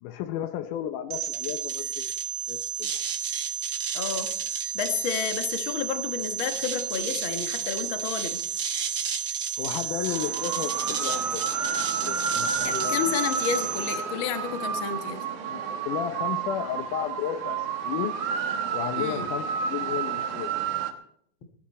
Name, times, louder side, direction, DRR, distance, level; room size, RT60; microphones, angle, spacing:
voice 1, 0.0-2.1 2.5-2.9 9.6-13.0 15.5-18.2 18.7-20.5, left 10 dB, 80° left, 10 dB, 2.2 m, -33 dB
sound 1, 1.1-14.0, right 7 dB, 45° right, 1.7 m, -31 dB
voice 2, 3.9-4.3 4.7-8.4 12.6-15.2 19.0-19.3, left 7 dB, 50° left, 6 dB, 1.8 m, -31 dB
sound 2, 10.1-20.9, right 6 dB, 75° right, 2.9 m, -30 dB
19.5 x 12.0 x 4.2 m, 0.65 s
omnidirectional pair, 3.8 m